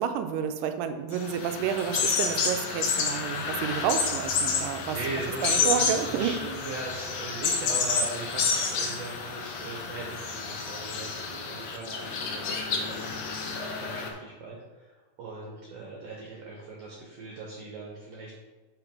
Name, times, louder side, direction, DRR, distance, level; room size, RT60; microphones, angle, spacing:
voice 1, 0.0-5.0 5.4-6.3, right 8 dB, 80° right, 8 dB, 2.2 m, -30 dB
sound 1, 1.1-14.1, left 5 dB, 70° left, 1.3 m, -30 dB
voice 2, 4.9-14.9 15.2-18.3, right 3 dB, 60° right, -2 dB, 1.9 m, -39 dB
6.0 x 5.4 x 5.3 m, 1.3 s
omnidirectional pair, 3.8 m